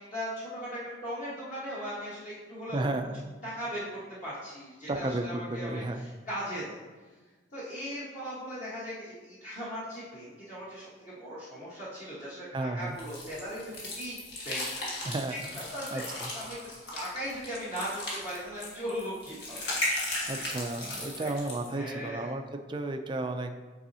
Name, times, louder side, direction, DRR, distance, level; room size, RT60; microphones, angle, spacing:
voice 1, 0.0-2.9 3.4-3.8 4.2-6.8 7.5-13.6 14.0-14.2 14.4-16.6 16.9-19.7 20.2-21.3 21.7-22.3, equal, 40° left, -9 dB, 1.4 m, -38 dB
voice 2, 2.7-3.2 4.9-6.1 12.5-12.9 15.0-15.4 15.9-16.3 20.3-22.4 22.7-23.5, right 2 dB, 25° right, 6 dB, 0.4 m, -33 dB
sound 1, 13.0-21.7, left 1 dB, 60° left, 1.7 m, -36 dB
8.7 x 4.0 x 2.8 m, 1.4 s
head